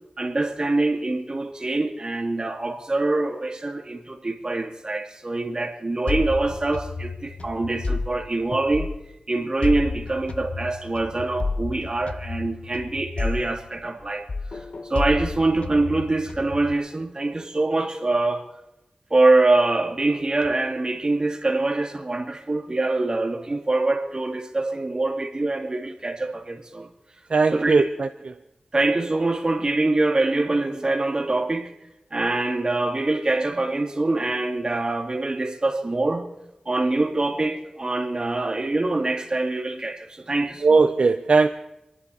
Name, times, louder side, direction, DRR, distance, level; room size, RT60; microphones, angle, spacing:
voice 1, 0.2-8.9 9.3-14.3 14.5-18.5 19.1-26.9 27.5-27.9 28.7-31.7 32.1-36.3 36.7-40.7, right 2 dB, 40° right, 2.4 m, -24 dB
sound 1, 6.1-9.2 9.6-14.0 14.3-16.7, left 3 dB, 65° left, 0.8 m, -31 dB
voice 2, 27.3-28.3 40.6-41.5, right 4 dB, 65° right, 0.6 m, -19 dB
27.5 x 11.0 x 4.2 m
wide cardioid pair, 75°, 2 cm